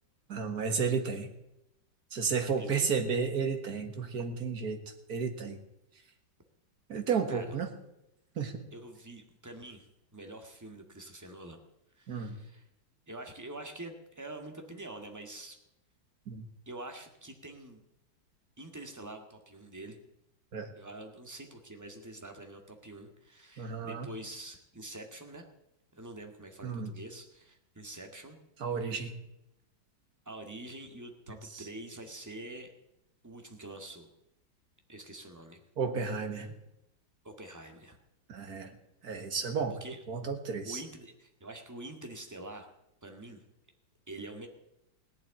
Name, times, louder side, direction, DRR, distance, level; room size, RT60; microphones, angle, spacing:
voice 1, 0.3-1.3 2.1-4.8 5.1-5.6 6.9-7.7 8.4-8.7 12.1-12.4 16.3-16.4 20.5-20.7 23.6-24.1 26.6-26.9 28.6-29.1 31.5-31.7 35.8-36.5 38.3-38.7 39.0-39.7 40.1-40.8, right 5 dB, 55° right, 6 dB, 2.1 m, -32 dB
voice 2, 8.7-11.6 12.0-12.7 13.1-15.6 16.7-17.8 18.6-20.0 20.7-25.5 25.9-28.4 28.7-28.9 30.3-32.7 33.2-34.1 34.9-35.6 37.2-38.0 39.7-40.0 40.6-42.7 43.0-43.4 44.1-44.5, right 2 dB, 10° right, 4 dB, 1.9 m, -46 dB
17.5 x 7.8 x 10.0 m, 0.87 s
omnidirectional pair, 2.1 m